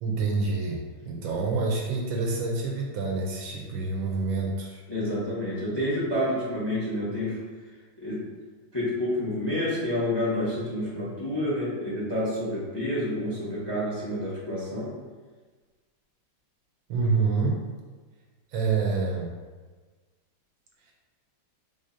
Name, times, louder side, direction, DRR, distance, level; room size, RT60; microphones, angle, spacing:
voice 1, 0.0-4.8 16.9-17.6 18.5-19.3 20.9-21.0, right 4 dB, 75° right, -1 dB, 1.3 m, -27 dB
voice 2, 4.9-7.4 8.0-8.2 8.7-14.9, left 1 dB, 15° left, -8 dB, 0.9 m, -29 dB
5.1 x 3.5 x 2.7 m, 1.4 s
omnidirectional pair, 2.3 m